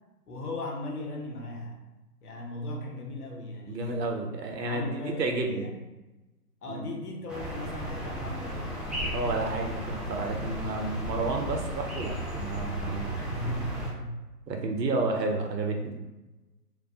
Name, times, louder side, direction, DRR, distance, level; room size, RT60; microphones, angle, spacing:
voice 1, 0.3-1.8 2.2-4.0 4.6-5.8 6.6-8.8 13.2-14.1 14.8-15.0, left 1 dB, 65° left, 1 dB, 0.7 m, -37 dB
voice 2, 3.7-4.9 5.2-5.7 6.7-6.9 9.1-13.2 14.5-16.0, right 3 dB, 90° right, 3 dB, 0.6 m, -31 dB
sound 1, 7.3-13.9, equal, ahead, 0.3 m, -35 dB
2.3 x 2.1 x 2.6 m, 1.1 s
hypercardioid pair, 160°, 48 cm